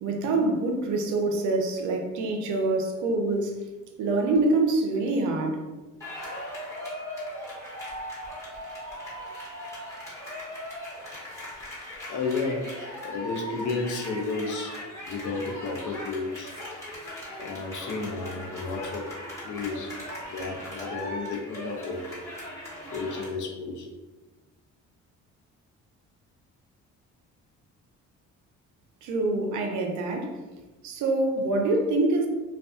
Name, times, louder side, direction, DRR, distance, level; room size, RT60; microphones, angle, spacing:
voice 1, 0.0-3.6 4.0-5.7 29.0-30.4 30.8-32.3, right 2 dB, 80° right, 3 dB, 0.5 m, -25 dB
sound 1, 6.0-23.3, left 1 dB, 10° left, 1.2 m, -39 dB
voice 2, 12.1-12.7 13.0-16.5 17.4-19.1 19.4-19.9 20.2-22.0 22.9-23.9, left 3 dB, 75° left, 1 dB, 0.6 m, -32 dB
2.5 x 2.3 x 2.3 m, 1.2 s
cardioid pair, 90°, 30 cm